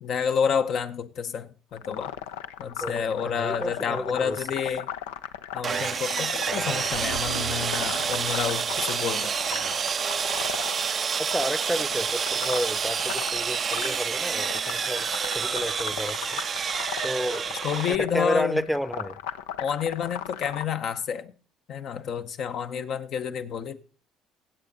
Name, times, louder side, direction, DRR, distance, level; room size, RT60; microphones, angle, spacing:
voice 1, 0.0-2.1 2.6-4.9 5.5-9.4 17.6-18.6 19.6-21.3 21.7-23.8, left 7 dB, 60° left, 0.8 m, -29 dB
sound 1, 1.7-20.6, left 10 dB, 85° left, 0.5 m, -37 dB
voice 2, 2.8-4.4 11.3-15.1 15.3-16.2 17.0-17.4 17.9-19.2, equal, ahead, 0.7 m, -31 dB
Sawing, 5.6-18.0, right 6 dB, 40° right, 0.4 m, -28 dB
scary background, 6.9-10.3 10.6-10.7, right 7 dB, 90° right, 0.7 m, -42 dB
15.5 x 7.6 x 3.9 m
hypercardioid pair, 70°, 0 cm